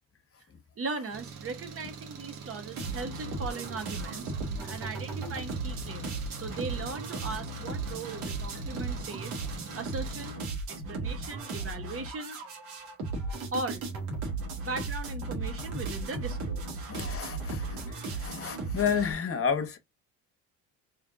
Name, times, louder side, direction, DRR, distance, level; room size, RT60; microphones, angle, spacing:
voice 1, 0.8-4.3 4.7-9.4 9.7-10.4 10.7-12.4 13.5-13.8 14.6-16.8, right 3 dB, 40° right, 1.1 m, -38 dB
Engine, 1.1-10.3, right 6 dB, 60° right, 1.3 m, -45 dB
sound 1, 2.7-19.1, right 3 dB, 90° right, 1.7 m, -36 dB
voice 2, 16.9-17.8 18.2-19.8, left 6 dB, 40° left, 1.1 m, -30 dB
3.6 x 3.2 x 3.5 m
supercardioid pair, 70°, 35 cm